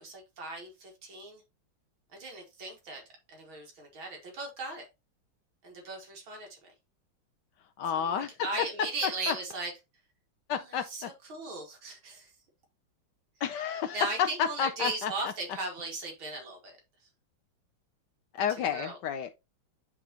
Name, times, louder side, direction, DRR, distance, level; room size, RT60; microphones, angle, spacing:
voice 1, 0.0-1.4 2.1-3.0 3.3-4.8 5.6-6.7 7.9-9.7 10.6-12.3 13.9-16.8 18.7-19.0, right 3 dB, 75° right, 2.6 m, -38 dB
voice 2, 7.8-8.3 9.3-9.4 10.5-11.1 13.4-14.0 14.4-15.1 18.3-19.3, left 8 dB, 70° left, 1.0 m, -31 dB
9.8 x 3.7 x 2.8 m
omnidirectional pair, 2.3 m